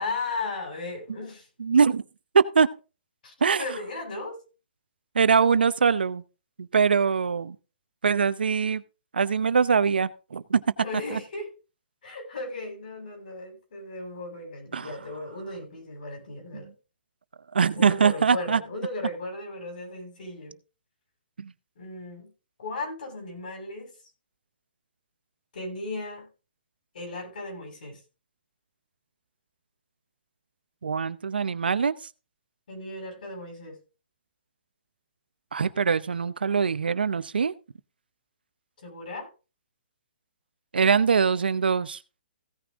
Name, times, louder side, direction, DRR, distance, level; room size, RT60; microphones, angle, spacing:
voice 1, 0.0-1.5 3.2-4.4 10.8-11.5 12.0-16.7 17.7-20.6 21.8-22.3 22.6-23.9 25.5-26.3 26.9-28.0 32.7-33.8 38.8-39.3, left 2 dB, 60° left, 6.5 m, -36 dB
voice 2, 1.6-2.0 2.3-2.7 3.4-3.6 5.1-6.2 6.6-7.6 8.0-8.8 9.1-10.6 11.1-11.2 14.7-14.9 16.5-16.7 17.5-18.6 21.4-21.5 30.8-32.0 35.5-37.5 40.7-42.0, right 6 dB, 90° right, 0.8 m, -23 dB
16.0 x 6.1 x 3.7 m
hypercardioid pair, 155°, 5 cm